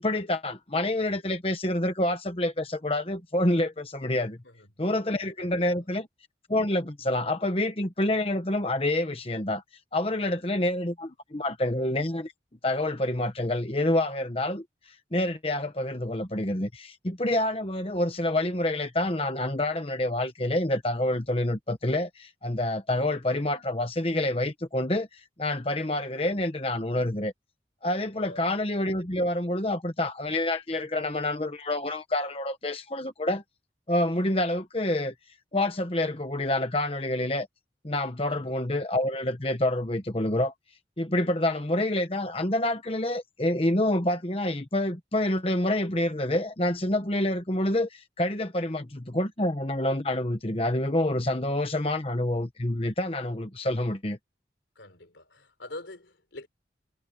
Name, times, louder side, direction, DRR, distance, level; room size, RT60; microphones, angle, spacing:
voice 1, 0.0-4.4 4.8-6.1 6.5-9.6 9.9-12.3 12.6-14.6 15.1-27.3 27.8-33.4 33.9-35.1 35.5-37.5 37.8-40.5 41.0-54.2, left 1 dB, 30° left, 1.2 m, -27 dB
voice 2, 4.4-4.9 5.4-5.9 10.3-10.4 28.1-28.5 38.3-38.6 54.8-56.5, left 2 dB, 85° left, 4.0 m, -45 dB
head